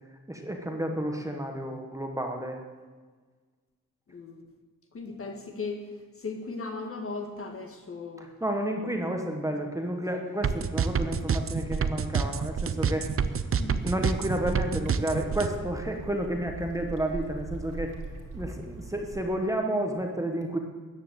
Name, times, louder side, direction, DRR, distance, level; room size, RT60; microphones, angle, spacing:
voice 1, 0.3-2.6 8.2-13.1 13.8-17.9 18.3-20.6, right 1 dB, 10° right, 3 dB, 1.4 m, -31 dB
voice 2, 4.1-4.4 4.9-5.9 6.2-8.3 13.5-13.8, left 4 dB, 40° left, 4 dB, 1.8 m, -37 dB
sound 1, 10.4-15.5, right 6 dB, 40° right, 0.7 m, -27 dB
sound 2, 13.8-19.2, right 3 dB, 70° right, 2.5 m, -41 dB
14.0 x 9.8 x 8.0 m, 1.4 s
wide cardioid pair, 170°, 33 cm